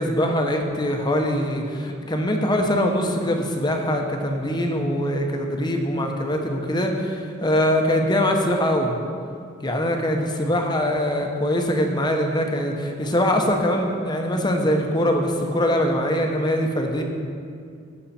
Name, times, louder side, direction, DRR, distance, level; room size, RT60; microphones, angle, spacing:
voice 1, 0.0-9.0 9.6-17.0, equal, 20° left, 3 dB, 0.9 m, -23 dB
16.0 x 6.6 x 4.3 m, 2.3 s
head